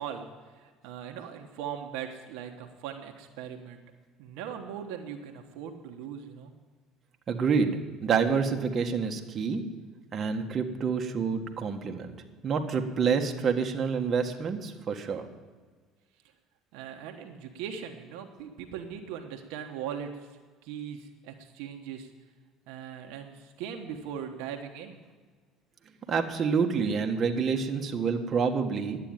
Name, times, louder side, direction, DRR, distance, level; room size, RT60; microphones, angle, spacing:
voice 1, 0.0-3.8 4.2-6.5 16.7-22.1 22.7-25.0, right 8 dB, 80° right, 4 dB, 1.3 m, -40 dB
voice 2, 7.3-9.6 10.1-12.1 12.4-15.2 26.1-29.0, right 5 dB, 45° right, 3 dB, 1.5 m, -28 dB
11.5 x 9.1 x 9.1 m, 1.5 s
supercardioid pair, 85°, 0 cm